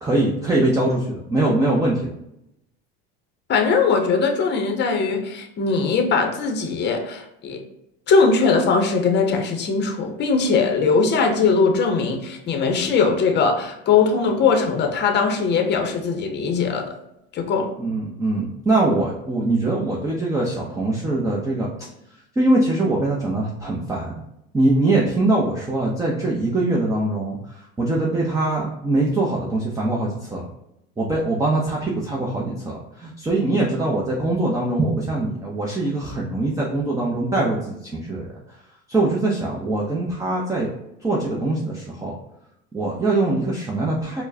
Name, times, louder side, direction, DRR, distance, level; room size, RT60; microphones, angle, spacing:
voice 1, 0.0-2.0 17.8-21.9 22.4-24.2 24.5-30.4 31.0-38.6 38.9-40.7 41.0-42.1 42.7-44.2, right 2 dB, 10° right, -4 dB, 0.6 m, -22 dB
voice 2, 3.5-7.6 8.1-16.9 17.3-17.7, left 4 dB, 35° left, 4 dB, 0.7 m, -20 dB
4.4 x 2.1 x 2.7 m, 0.82 s
supercardioid pair, 105°, 30 cm